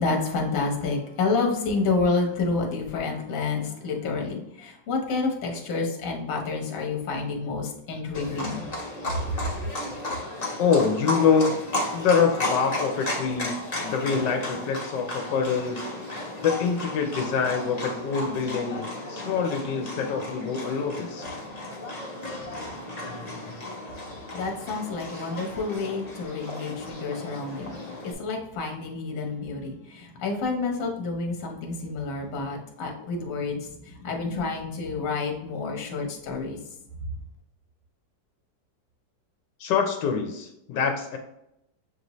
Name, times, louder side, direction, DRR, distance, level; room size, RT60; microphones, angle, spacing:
voice 1, 0.0-8.6 24.3-27.7 28.0-36.6, left 4 dB, 55° left, 1 dB, 1.2 m, -29 dB
Livestock farm animals working animals, 8.1-28.1, left 1 dB, 30° left, 0.8 m, -34 dB
voice 2, 10.6-11.5 11.9-13.5 13.8-15.8 16.4-21.2 39.6-41.2, left 6 dB, 80° left, 4 dB, 1.2 m, -25 dB
6.7 x 2.6 x 3.0 m, 0.84 s
omnidirectional pair, 1.9 m